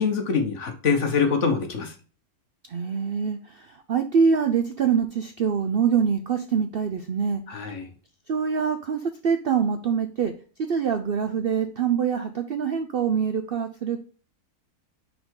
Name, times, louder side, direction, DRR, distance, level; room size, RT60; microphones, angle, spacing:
voice 1, 0.0-1.9 7.5-7.9, left 5 dB, 55° left, 6 dB, 1.3 m, -24 dB
voice 2, 2.7-7.7 8.3-10.3 10.6-14.0, right 6 dB, 65° right, 7 dB, 0.6 m, -25 dB
5.4 x 4.7 x 3.7 m, 0.37 s
omnidirectional pair, 1.6 m